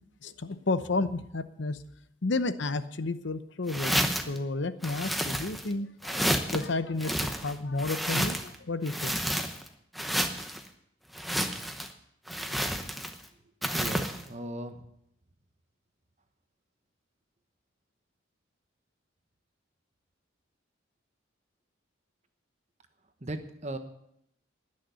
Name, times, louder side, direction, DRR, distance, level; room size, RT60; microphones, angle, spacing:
voice 1, 0.2-1.8 2.2-9.4, left 3 dB, 65° left, 12 dB, 0.8 m, -32 dB
sound 1, 3.7-4.4 4.8-5.7 6.0-6.6 7.0-8.6 8.9-9.7 10.0-10.6 11.1-11.9 12.3-13.2 13.6-14.2, equal, ahead, 0.8 m, -30 dB
voice 2, 13.7-14.8 23.2-23.8, right 1 dB, 35° right, 7 dB, 1.1 m, -37 dB
19.5 x 6.6 x 6.9 m, 0.76 s
head